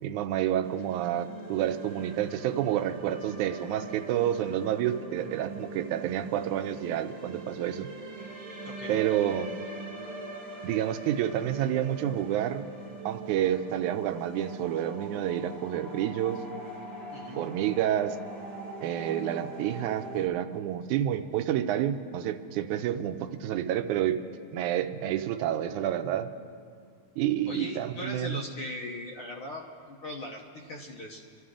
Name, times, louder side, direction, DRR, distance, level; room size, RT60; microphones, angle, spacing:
voice 1, 0.0-7.9 8.9-9.5 10.6-12.6 13.1-16.4 17.3-18.2 18.8-24.2 24.5-26.3 27.2-28.4, right 11 dB, 90° right, 8 dB, 2.1 m, -29 dB
sound 1, 0.6-20.3, right 2 dB, 20° right, 1.0 m, -42 dB
voice 2, 8.6-9.0 17.1-17.4 27.5-31.2, left 1 dB, 60° left, 0 dB, 1.5 m, -39 dB
26.5 x 13.0 x 3.7 m, 2.3 s
omnidirectional pair, 3.4 m